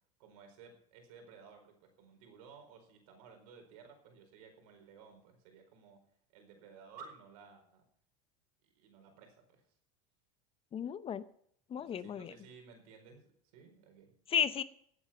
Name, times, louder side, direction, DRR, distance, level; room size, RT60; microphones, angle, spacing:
voice 1, 0.2-6.0 6.3-7.8 8.7-9.6 11.8-14.1, right 5 dB, 80° right, 4 dB, 4.7 m, -56 dB
voice 2, 10.7-11.2 11.7-12.3 14.3-14.6, left 8 dB, 30° left, 15 dB, 0.7 m, -33 dB
17.0 x 8.5 x 5.7 m, 0.66 s
supercardioid pair, 115°, 19 cm